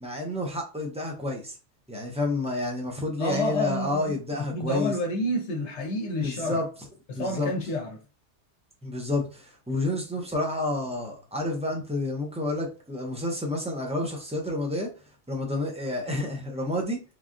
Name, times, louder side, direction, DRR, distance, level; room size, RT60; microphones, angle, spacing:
voice 1, 0.0-1.5 1.9-4.9 6.2-6.6 7.2-7.5 8.8-14.9 15.3-17.0, left 2 dB, 10° right, 0.4 m, -29 dB
voice 2, 3.2-6.6 7.1-8.0, left 1 dB, 75° left, 0.9 m, -29 dB
3.3 x 2.3 x 2.5 m
omnidirectional pair, 1.2 m